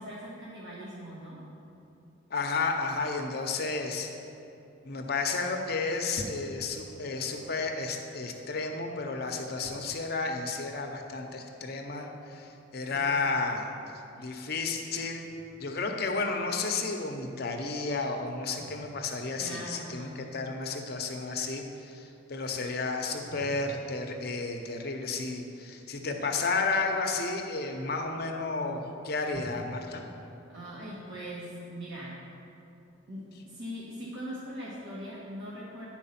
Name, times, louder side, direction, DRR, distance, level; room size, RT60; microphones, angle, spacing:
voice 1, 0.0-1.4 12.9-13.2 19.4-20.5 30.5-32.2 33.1-35.9, equal, 60° right, -8 dB, 1.3 m, -41 dB
voice 2, 2.3-4.1 4.8-13.7 14.2-15.2 15.6-30.0, left 3 dB, 50° left, 3 dB, 0.7 m, -32 dB
Drum, 15.3-16.0 18.6-20.3 23.3-25.8 29.3-32.5, equal, 10° right, 1.4 m, -50 dB
10.0 x 4.5 x 5.7 m, 2.7 s
head